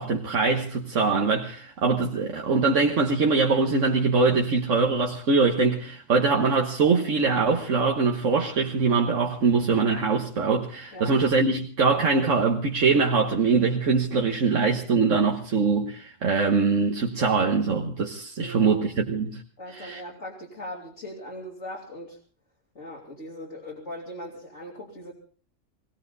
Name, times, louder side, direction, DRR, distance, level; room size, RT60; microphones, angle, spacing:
voice 1, 0.0-19.4 19.7-20.0, right 4 dB, 80° right, 1.7 m, -23 dB
voice 2, 18.4-18.8 19.6-22.2 22.7-25.1, left 1 dB, 70° left, 3.2 m, -39 dB
20.0 x 18.0 x 4.0 m
omnidirectional pair, 1.3 m